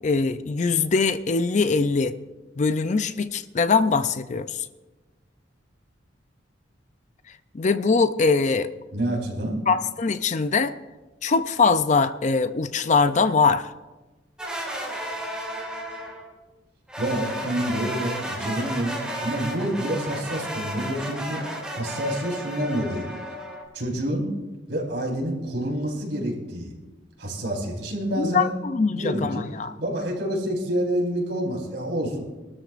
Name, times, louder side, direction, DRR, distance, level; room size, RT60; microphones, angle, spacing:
voice 1, 0.0-2.1 2.6-4.7 7.5-8.7 9.7-10.7 11.2-13.7 28.2-29.7, left 4 dB, 40° left, 12 dB, 0.4 m, -22 dB
voice 2, 8.9-9.7 17.0-21.4 21.7-23.1 23.7-24.3 24.7-26.7 27.2-28.5 28.9-29.4 29.8-32.2, right 1 dB, 70° right, -2 dB, 4.2 m, -28 dB
sound 1, 14.4-16.3 16.9-23.6, equal, 5° right, 2.5 m, -33 dB
23.5 x 13.0 x 2.5 m, 1.2 s
head